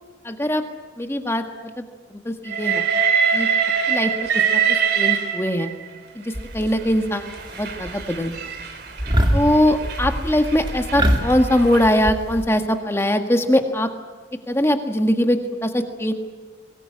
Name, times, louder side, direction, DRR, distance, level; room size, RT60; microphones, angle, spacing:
voice 1, 0.2-0.6 1.0-1.8 2.2-2.8 3.3-3.5 3.9-5.7 6.1-7.2 7.5-8.3 9.3-13.9 14.5-16.1, left 1 dB, 15° left, 5 dB, 1.7 m, -21 dB
Train, 2.5-5.9 6.7-12.0, right 7 dB, 55° right, 2.7 m, -24 dB
sound 1, 6.3-7.0 7.4-8.0 8.3-8.6 9.0-12.5, equal, 25° right, 2.5 m, -24 dB
23.5 x 19.5 x 9.8 m, 1.4 s
head